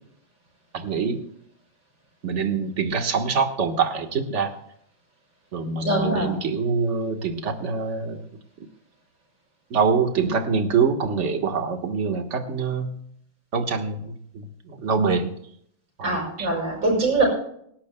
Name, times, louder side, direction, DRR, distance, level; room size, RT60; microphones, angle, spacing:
voice 1, 0.7-1.2 2.2-4.5 5.5-8.2 9.7-13.0 13.5-15.3 16.0-16.5, right 5 dB, 40° right, 5 dB, 1.6 m, -25 dB
voice 2, 5.8-6.4 16.0-17.2, right 2 dB, 65° right, -1 dB, 6.4 m, -23 dB
26.5 x 11.5 x 2.3 m, 0.70 s
omnidirectional pair, 2.2 m